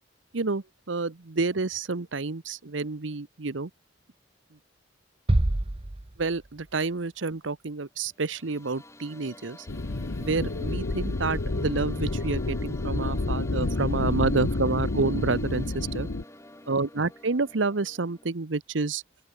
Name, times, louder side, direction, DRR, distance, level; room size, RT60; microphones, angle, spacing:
voice 1, 0.3-3.7 6.2-9.7 10.2-16.1 16.7-19.0, right 3 dB, 80° right, 1.0 m, -29 dB
sound 1, 5.3-6.9, right 1 dB, 30° right, 0.9 m, -27 dB
sound 2, 8.1-18.3, left 1 dB, 15° left, 6.4 m, -48 dB
sound 3, 9.7-16.2, left 2 dB, 85° left, 1.1 m, -29 dB
open air
head